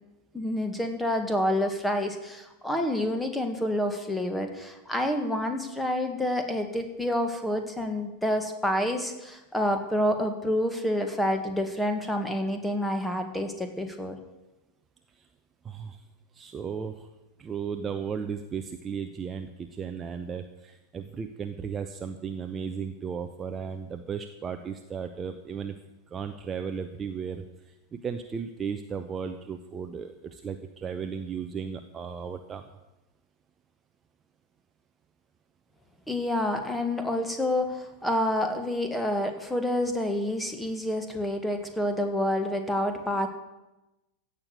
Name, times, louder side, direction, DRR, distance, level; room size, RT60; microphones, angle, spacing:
voice 1, 0.3-14.2 36.1-43.3, left 1 dB, 5° left, 6 dB, 1.9 m, -28 dB
voice 2, 15.6-16.0 16.3-17.1 17.4-25.7 26.1-27.4 27.9-32.6, right 6 dB, 20° right, 7 dB, 0.8 m, -35 dB
16.0 x 6.7 x 9.4 m, 1.0 s
figure-of-eight pair, 90°, 0 cm